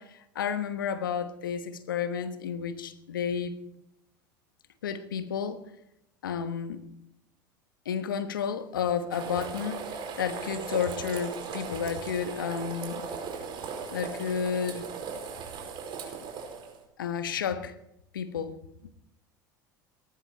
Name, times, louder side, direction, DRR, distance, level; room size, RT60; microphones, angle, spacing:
voice 1, 0.0-3.5 4.8-5.6 6.2-6.8 7.8-9.8 10.2-13.1 13.9-14.9 17.0-17.7 18.1-18.6 18.8-18.9, left 7 dB, 85° left, 11 dB, 1.2 m, -31 dB
sound 1, 9.1-16.8, right 6 dB, 50° right, 4.9 m, -38 dB
18.5 x 14.0 x 4.5 m, 0.83 s
hypercardioid pair, 80°, 11 cm